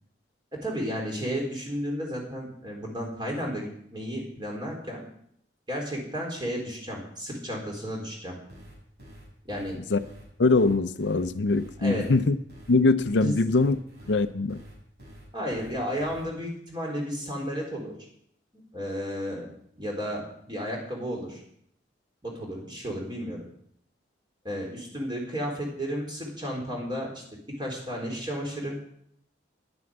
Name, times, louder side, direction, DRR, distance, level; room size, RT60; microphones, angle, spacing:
voice 1, 0.5-5.1 5.7-8.4 9.4-9.8 11.8-12.1 13.2-13.4 15.3-17.9 18.7-19.5 19.8-21.4 22.2-23.4 24.4-28.8, equal, 25° right, 4.1 m, -33 dB
sound 1, 8.5-16.3, equal, 60° right, 6.3 m, -48 dB
voice 2, 10.4-12.4 12.7-13.8 14.1-14.6, left 3 dB, 70° left, 0.6 m, -22 dB
10.5 x 9.5 x 7.9 m
head